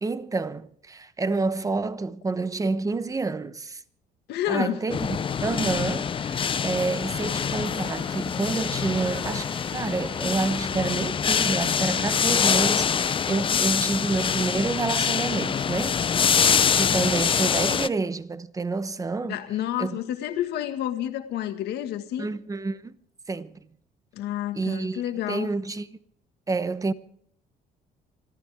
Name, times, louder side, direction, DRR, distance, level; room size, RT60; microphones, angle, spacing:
voice 1, 0.0-3.8 4.5-5.1 5.4-16.0 16.8-19.4 19.8-20.0 22.2-23.0 23.3-23.6 24.5-25.0 25.3-25.9 26.5-26.9, right 3 dB, 20° right, 1.0 m, -28 dB
voice 2, 4.3-4.8 19.3-22.3 24.1-25.5, left 12 dB, 80° left, 1.8 m, -29 dB
sound 1, 4.9-17.9, left 7 dB, 30° left, 0.6 m, -25 dB
sound 2, 6.6-12.3, left 2 dB, 10° left, 3.5 m, -45 dB
26.0 x 13.5 x 3.5 m
cardioid pair, 110°, 17 cm